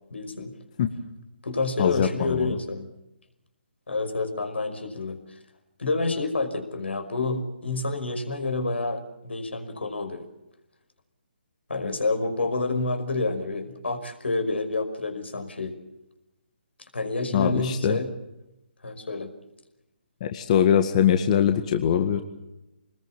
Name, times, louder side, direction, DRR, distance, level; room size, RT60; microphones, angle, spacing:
voice 1, 0.1-0.5 1.4-2.9 3.9-5.2 5.8-10.3 11.7-15.7 16.9-18.1 18.8-19.3, left 3 dB, 85° left, 8 dB, 5.4 m, -28 dB
voice 2, 1.8-2.5 17.3-18.0 20.2-22.2, left 9 dB, 40° left, 7 dB, 1.8 m, -22 dB
26.0 x 20.5 x 7.3 m, 0.94 s
figure-of-eight pair, 145°, 6 cm